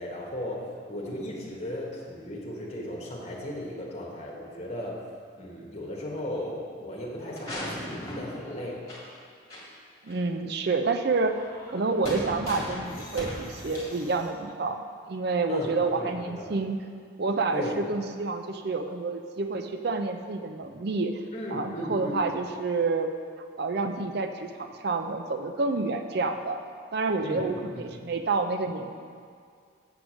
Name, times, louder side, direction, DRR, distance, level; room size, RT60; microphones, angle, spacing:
voice 1, 0.0-5.0 5.4-8.8 15.5-16.5 17.5-17.8 21.3-22.3 27.2-27.9, left 1 dB, 35° left, -3 dB, 1.4 m, -36 dB
sound 1, 7.2-9.2 9.5-9.6 10.1-10.2 11.3-14.3, equal, 20° left, 2.0 m, -38 dB
voice 2, 10.0-11.4 11.7-14.8 15.1-16.8 17.2-21.1 21.5-23.1 23.6-26.6 26.9-28.9, right 3 dB, 55° right, 6 dB, 0.5 m, -28 dB
7.9 x 4.8 x 6.2 m, 2.1 s
head